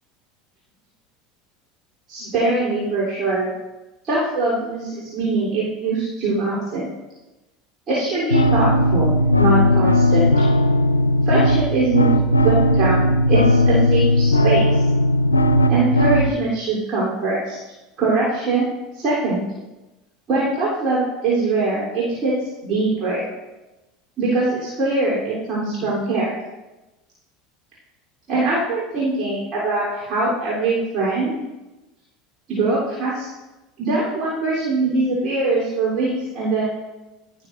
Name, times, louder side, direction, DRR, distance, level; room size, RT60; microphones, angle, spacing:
voice 1, 2.1-3.5 4.0-6.9 7.9-10.3 11.2-14.8 15.7-17.6 18.0-18.7 18.9-19.5 20.3-22.3 22.6-23.3 24.2-26.4 28.3-31.4 32.5-33.3 33.8-36.7, right 3 dB, 35° right, -8 dB, 3.6 m, -22 dB
sound 1, 8.3-16.3, left 1 dB, 85° left, 0.5 m, -17 dB
16.5 x 7.1 x 2.7 m, 1.1 s
figure-of-eight pair, 70°, 0 cm